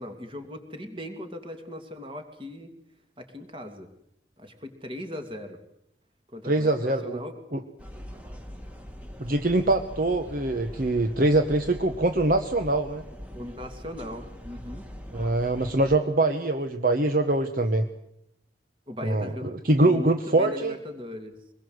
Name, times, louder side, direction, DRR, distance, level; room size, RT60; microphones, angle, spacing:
voice 1, 0.0-2.7 3.2-3.9 4.4-5.6 6.3-7.3 13.3-14.8 18.9-21.4, left 1 dB, 25° right, 6 dB, 2.6 m, -38 dB
voice 2, 6.4-7.2 7.5-7.6 9.2-13.0 15.1-17.9 19.0-20.7, right 2 dB, 50° right, 7 dB, 1.1 m, -23 dB
sound 1, 7.8-16.0, equal, 5° right, 1.9 m, -42 dB
24.0 x 21.0 x 8.0 m, 0.79 s
head